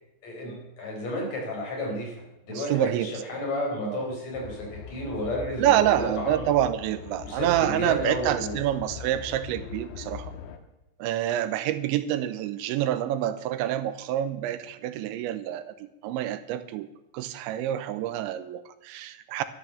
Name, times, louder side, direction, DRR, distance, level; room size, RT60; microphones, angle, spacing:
voice 1, 0.2-2.2 2.4-6.5 7.2-8.6, left 1 dB, 35° left, -1 dB, 5.3 m, -32 dB
voice 2, 2.5-3.1 3.9-4.0 5.6-10.3 11.0-15.7 16.0-16.9 17.1-19.4, right 12 dB, 85° right, 12 dB, 3.1 m, -27 dB
sound 1, 4.3-10.6, left 7 dB, 75° left, 3.4 m, -41 dB
14.0 x 11.5 x 6.9 m, 0.90 s
omnidirectional pair, 5.3 m